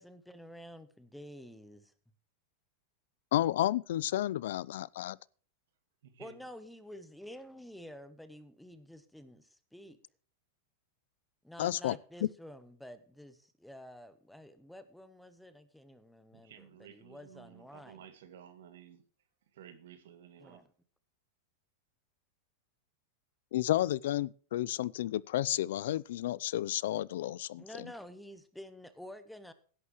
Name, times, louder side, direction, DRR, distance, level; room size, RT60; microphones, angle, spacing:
voice 1, 0.0-1.9 6.2-10.0 11.4-18.0 20.4-20.7 27.5-29.5, equal, ahead, 0.9 m, -50 dB
voice 2, 3.3-5.2 11.6-12.0 23.5-27.6, left 13 dB, 65° left, 0.5 m, -31 dB
voice 3, 6.0-6.5 16.3-19.0 19.5-20.6, right 9 dB, 75° right, 2.1 m, -54 dB
16.0 x 11.0 x 3.1 m
supercardioid pair, 165°, 0 cm